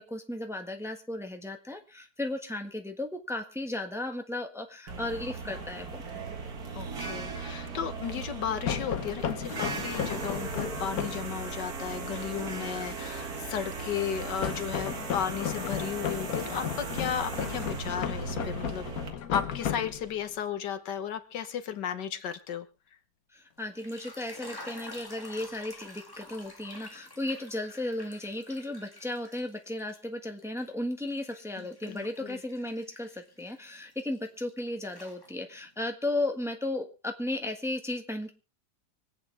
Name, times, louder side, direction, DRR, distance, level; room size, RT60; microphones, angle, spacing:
voice 1, 0.0-6.0 23.3-38.3, left 1 dB, ahead, 4 dB, 1.3 m, -35 dB
sound 1, 4.9-19.1, right 4 dB, 60° right, 2.2 m, -38 dB
voice 2, 6.7-18.9 19.3-22.7 31.8-32.4, left 8 dB, 85° left, 9 dB, 1.8 m, -34 dB
sound 2, 8.7-11.3 14.4-20.3, left 9 dB, 60° left, 1.4 m, -34 dB
sound 3, 23.6-30.0 30.4-34.5 34.8-35.7, left 2 dB, 15° left, 1.7 m, -49 dB
25.0 x 8.7 x 3.4 m, 0.31 s
omnidirectional pair, 1.8 m